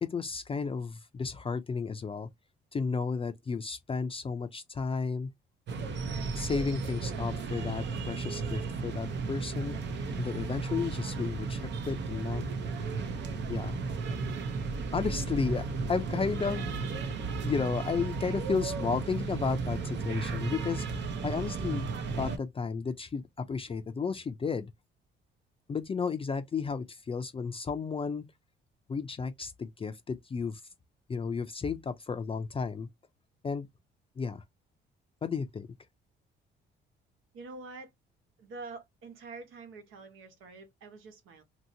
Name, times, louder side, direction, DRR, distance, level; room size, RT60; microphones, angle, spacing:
voice 1, 0.0-2.3 2.7-5.3 6.3-9.8 10.2-12.4 13.5-13.8 14.9-16.9 17.4-20.9 21.2-21.9 22.2-24.7 25.7-28.2 28.9-30.6 31.1-32.9 33.4-33.7 34.2-34.4 35.2-35.7, left 5 dB, 30° left, 0.4 m, -33 dB
sound 1, 5.7-22.4, right 4 dB, 65° right, 0.8 m, -34 dB
voice 2, 37.3-37.9 38.4-41.4, right 3 dB, 85° right, 1.2 m, -46 dB
2.9 x 2.7 x 2.6 m
cardioid pair, 90°, 20 cm